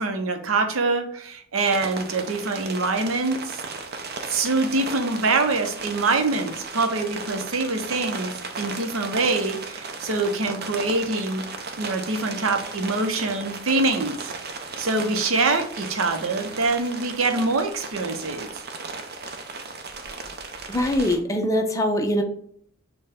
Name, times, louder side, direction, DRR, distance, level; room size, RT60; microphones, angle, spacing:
voice 1, 0.0-3.6 4.3-11.4 11.8-14.3 14.8-18.6, right 3 dB, 85° right, 6 dB, 0.7 m, -25 dB
sound 1, 1.6-21.2, right 4 dB, 50° right, 0.6 m, -35 dB
voice 2, 20.7-22.2, left 1 dB, 15° left, 4 dB, 0.5 m, -22 dB
6.6 x 2.2 x 3.4 m, 0.64 s
head